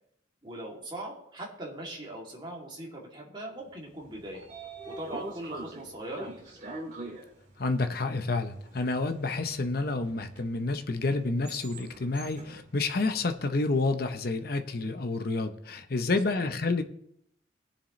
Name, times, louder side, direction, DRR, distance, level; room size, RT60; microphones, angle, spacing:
voice 1, 0.4-4.4 4.9-6.5 16.2-16.5, right 1 dB, 25° right, -2 dB, 2.6 m, -40 dB
Train / Sliding door, 3.9-14.1, right 2 dB, 40° right, 2.6 m, -45 dB
voice 2, 7.6-16.8, left 3 dB, 55° left, 7 dB, 0.8 m, -29 dB
20.0 x 7.2 x 3.1 m, 0.75 s
head